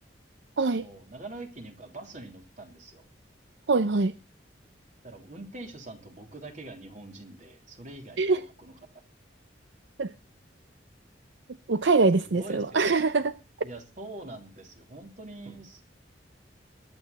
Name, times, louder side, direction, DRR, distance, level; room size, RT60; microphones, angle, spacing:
voice 1, 0.8-3.0 5.0-9.0 12.2-12.9 13.6-15.8, right 2 dB, 45° right, 3.3 m, -44 dB
voice 2, 3.7-4.1 8.2-8.4 10.0-10.1 11.7-13.3, right 3 dB, 75° right, 0.6 m, -23 dB
22.0 x 9.3 x 4.1 m
head